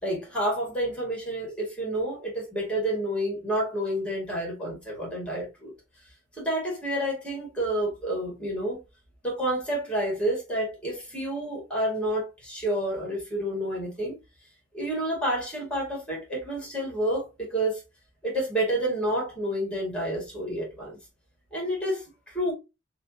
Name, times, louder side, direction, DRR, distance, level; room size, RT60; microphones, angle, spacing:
voice 1, 0.0-5.7 6.3-8.8 9.2-14.2 14.7-17.8 18.2-21.0 21.5-22.5, right 1 dB, 5° left, 1.8 m, -29 dB
6.0 x 2.8 x 2.6 m
head